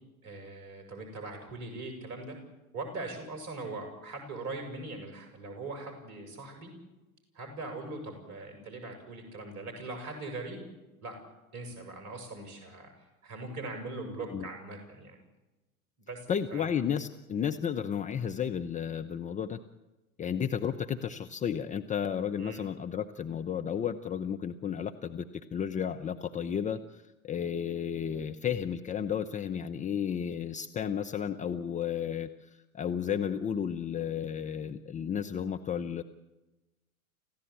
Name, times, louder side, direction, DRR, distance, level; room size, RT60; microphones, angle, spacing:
voice 1, 0.2-2.4 2.7-6.7 7.3-10.7 11.0-11.2 11.5-12.9 13.2-15.2 16.1-16.7 22.4-22.6, right 2 dB, 40° right, 4 dB, 7.3 m, -41 dB
voice 2, 16.3-19.6 20.2-36.0, left 8 dB, 15° left, 7 dB, 0.8 m, -33 dB
28.0 x 15.5 x 8.7 m, 1.1 s
figure-of-eight pair, 90°, 43 cm